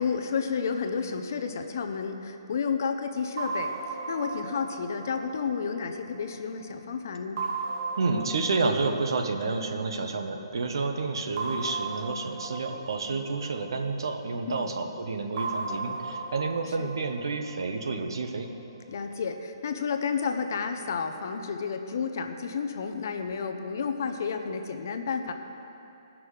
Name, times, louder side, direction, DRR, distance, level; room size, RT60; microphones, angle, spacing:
voice 1, 0.0-3.7 4.1-7.4 14.5-14.7 16.8-16.9 18.9-25.3, left 5 dB, 40° left, 6 dB, 0.6 m, -31 dB
sound 1, 3.4-6.7 7.4-10.3 11.4-14.5 15.4-18.5, right 3 dB, 30° right, 0.6 m, -37 dB
voice 2, 8.0-18.5, right 3 dB, 60° right, 5 dB, 0.9 m, -30 dB
17.0 x 6.0 x 4.8 m, 2.8 s
hypercardioid pair, 180°, 3 cm